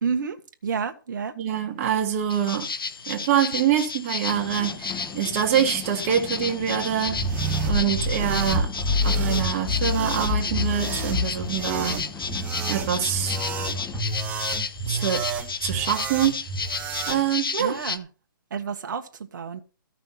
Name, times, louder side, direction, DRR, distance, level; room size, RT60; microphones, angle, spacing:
voice 1, 0.0-1.3 17.6-18.1 18.5-19.6, right 6 dB, 60° right, 1.4 m, -30 dB
voice 2, 1.4-2.7 3.1-7.2 7.6-8.7 9.0-12.1 12.7-13.4 14.9-15.2 15.6-16.3 17.1-17.8, right 9 dB, 35° right, 1.9 m, -25 dB
sound 1, 2.3-18.0, left 5 dB, 85° left, 1.1 m, -33 dB
sound 2, 4.3-14.0, left 6 dB, 10° left, 1.5 m, -40 dB
sound 3, 7.0-17.2, equal, 15° right, 1.4 m, -28 dB
14.0 x 5.9 x 5.8 m
hypercardioid pair, 155°, 12 cm